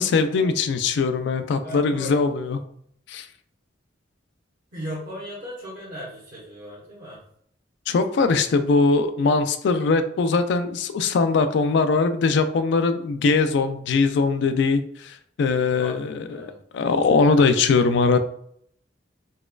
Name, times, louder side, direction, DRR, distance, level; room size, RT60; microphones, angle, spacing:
voice 1, 0.0-2.6 3.1-3.3 7.9-18.2, left 4 dB, 65° left, 9 dB, 0.3 m, -21 dB
voice 2, 1.6-2.2 4.7-7.2 15.7-16.6, equal, 45° right, -7 dB, 1.0 m, -37 dB
4.1 x 2.3 x 2.3 m, 0.67 s
head